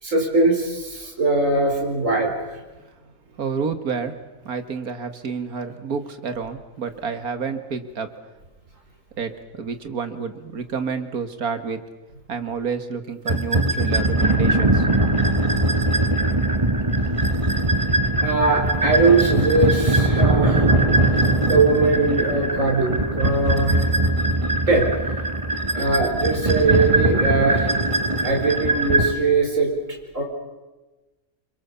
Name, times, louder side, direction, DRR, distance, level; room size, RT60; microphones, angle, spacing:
voice 1, 0.0-2.6 18.2-20.7 21.5-23.8 24.7-24.9 25.7-27.8 28.2-29.7 30.1-30.2, right 3 dB, 55° right, 1 dB, 4.9 m, -21 dB
voice 2, 3.4-4.2 4.4-8.1 9.2-11.8 12.3-14.9, right 5 dB, 75° right, 9 dB, 2.2 m, -29 dB
sound 1, 13.3-29.1, right 2 dB, 20° right, 1.6 m, -21 dB
27.5 x 24.5 x 7.1 m, 1.1 s
omnidirectional pair, 1.6 m